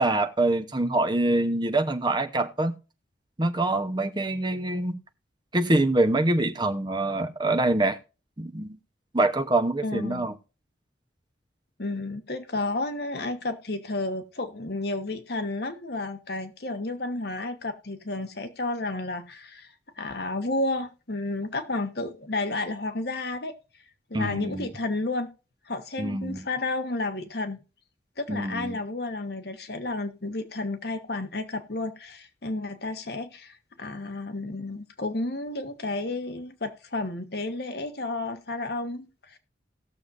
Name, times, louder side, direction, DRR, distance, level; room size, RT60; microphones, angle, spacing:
voice 1, 0.0-2.7 3.4-5.0 5.5-8.0 8.4-8.8 9.1-10.3 24.1-24.7 26.0-26.4 28.3-28.8, right 2 dB, 25° right, 0.9 m, -25 dB
voice 2, 9.8-10.3 11.8-23.5 24.1-25.3 25.7-27.6 28.2-39.4, left 2 dB, 60° left, 1.2 m, -31 dB
19.0 x 6.9 x 2.6 m
head